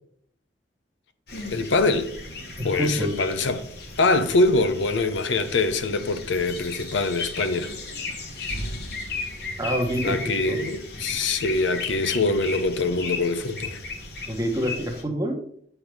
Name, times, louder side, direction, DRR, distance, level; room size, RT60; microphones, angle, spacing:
sound 1, 1.3-15.0, left 3 dB, 55° left, 1.3 m, -35 dB
voice 1, 1.5-2.1 2.6-3.6 4.0-7.7 10.0-13.8, left 3 dB, 80° left, 0.6 m, -24 dB
voice 2, 2.6-3.2 9.6-10.2 10.5-10.6 14.3-15.3, equal, 20° right, 1.0 m, -26 dB
7.2 x 3.4 x 5.9 m
head